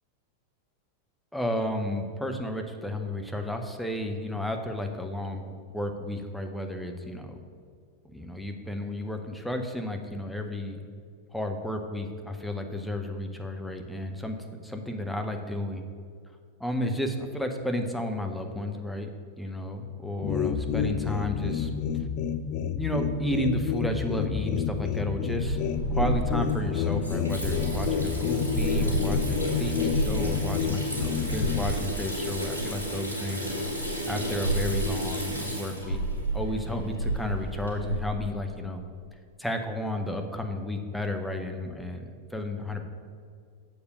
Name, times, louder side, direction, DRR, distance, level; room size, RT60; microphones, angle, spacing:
voice 1, 1.3-7.4 8.0-10.8 11.3-15.8 16.6-19.1 19.4-21.7 22.8-25.6 25.9-33.5 34.1-36.0 36.3-38.8 39.4-42.8, left 1 dB, ahead, 4 dB, 0.7 m, -32 dB
sound 1, 20.2-31.7, left 7 dB, 40° left, 0.3 m, -29 dB
Water tap faucet / Sink (filling or washing), 25.4-38.0, right 1 dB, 80° right, 1.9 m, -31 dB
6.7 x 4.6 x 6.5 m, 2.2 s
figure-of-eight pair, 90°, 0 cm